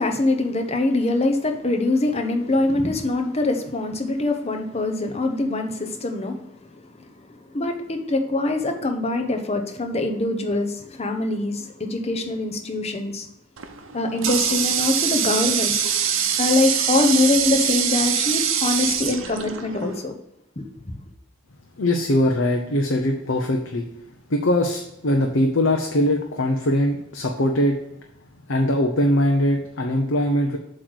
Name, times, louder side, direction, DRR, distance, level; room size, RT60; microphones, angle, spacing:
voice 1, 0.0-6.4 7.0-7.1 7.5-13.3 13.9-15.8 16.4-20.1 20.6-20.9, left 2 dB, 30° left, 5 dB, 0.9 m, -23 dB
Water tap faucet, 13.6-20.1, right 8 dB, 65° right, 0.8 m, -24 dB
voice 2, 21.8-23.9 24.3-27.8 28.5-30.6, left 1 dB, 60° left, 2 dB, 0.8 m, -21 dB
7.7 x 3.2 x 6.3 m, 0.80 s
head